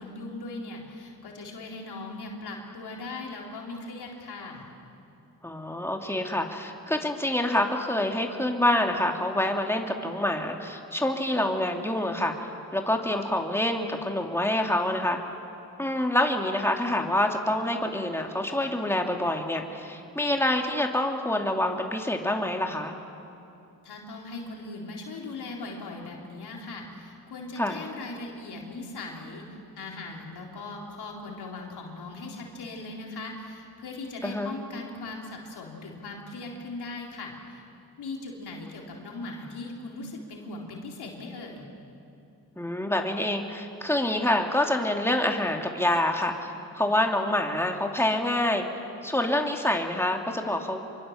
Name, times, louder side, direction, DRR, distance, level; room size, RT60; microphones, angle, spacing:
voice 1, 0.0-4.7 23.8-37.6 38.0-41.7, left 2 dB, 80° left, -1 dB, 3.9 m, -39 dB
voice 2, 5.4-12.3 12.7-15.2 15.8-22.9 27.6-27.8 34.2-34.5 42.6-48.6 49.0-50.8, left 1 dB, 5° left, 2 dB, 2.9 m, -26 dB
26.0 x 24.0 x 7.4 m, 2.7 s
supercardioid pair, 45°, 38 cm